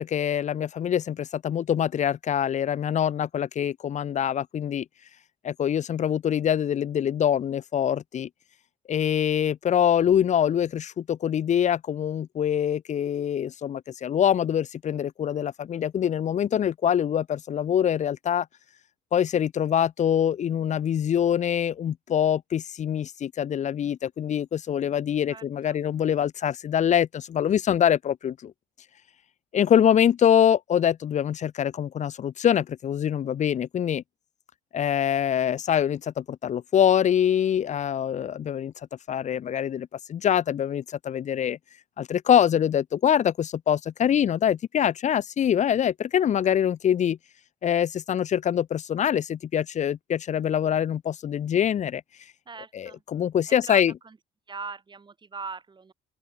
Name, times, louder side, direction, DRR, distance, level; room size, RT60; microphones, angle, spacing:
voice 1, 0.0-4.9 5.4-8.3 8.9-18.5 19.1-28.5 29.5-34.0 34.7-38.7 39.1-41.6 42.0-47.2 47.6-52.0 52.7-53.9, left 9 dB, 45° left, 1.0 m, -24 dB
voice 2, 25.3-25.8 52.5-53.0 53.5-54.2 54.5-55.9, right 4 dB, 25° right, 5.6 m, -40 dB
open air
cardioid pair, 110°, 17 cm